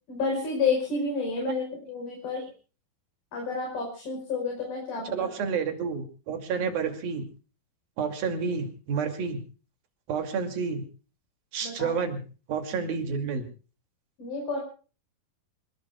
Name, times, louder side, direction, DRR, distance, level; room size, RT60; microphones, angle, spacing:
voice 1, 0.1-2.4 3.3-5.3 11.6-12.0 14.2-14.6, left 4 dB, 70° left, 0 dB, 7.1 m, -30 dB
voice 2, 5.1-7.2 8.0-9.4 10.1-10.9 11.5-12.2 12.5-13.5, right 5 dB, 70° right, 7 dB, 4.3 m, -30 dB
26.5 x 20.5 x 2.3 m, 0.37 s
omnidirectional pair, 4.4 m